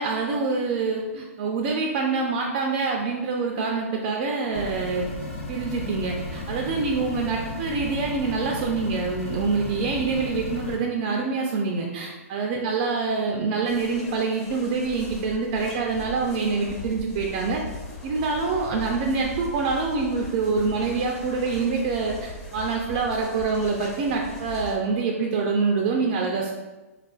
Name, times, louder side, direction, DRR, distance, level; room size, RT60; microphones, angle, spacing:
voice 1, 0.0-5.1 5.5-17.6 18.0-26.5, right 4 dB, 40° right, 1 dB, 0.3 m, -26 dB
sound 1, 4.5-10.8, left 1 dB, 65° left, 0.9 m, -34 dB
sound 2, 13.6-24.8, left 1 dB, 30° left, 1.1 m, -39 dB
3.4 x 2.4 x 2.3 m, 1.1 s
hypercardioid pair, 125°, 8 cm